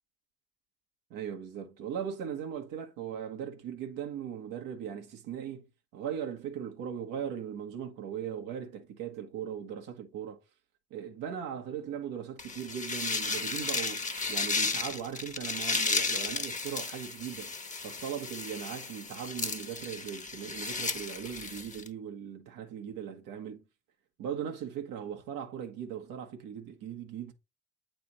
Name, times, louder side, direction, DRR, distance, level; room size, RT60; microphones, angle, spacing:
voice 1, 1.1-5.7 5.9-10.4 10.9-17.5 17.8-23.6 24.2-27.3, right 8 dB, 75° right, 1.2 m, -39 dB
sound 1, 12.4-21.9, left 4 dB, 25° left, 1.0 m, -34 dB
8.6 x 3.4 x 4.1 m
hypercardioid pair, 50°, 33 cm